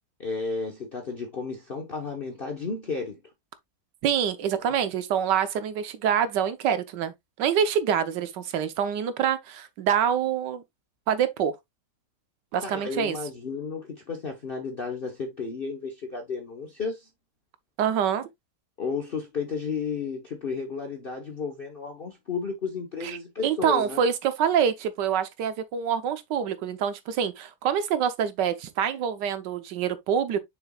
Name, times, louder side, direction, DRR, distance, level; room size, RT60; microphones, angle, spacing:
voice 1, 0.2-3.2 4.7-4.8 12.6-17.1 18.8-24.0, left 5 dB, 35° left, 1.1 m, -33 dB
voice 2, 4.0-10.6 11.1-11.6 12.5-13.2 17.8-18.3 23.0-23.2 23.4-30.4, right 8 dB, 85° right, 1.5 m, -26 dB
6.6 x 6.2 x 2.3 m
omnidirectional pair, 1.8 m